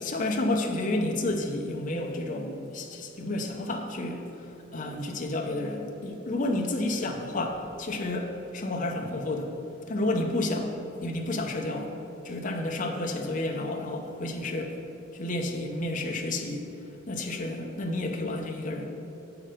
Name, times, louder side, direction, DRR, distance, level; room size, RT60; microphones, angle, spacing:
voice 1, 0.0-9.5 9.9-10.7 11.0-11.9 12.2-14.8 15.1-16.7 17.1-18.9, left 2 dB, 45° left, 2 dB, 0.7 m, -30 dB
7.7 x 6.0 x 5.0 m, 2.9 s
head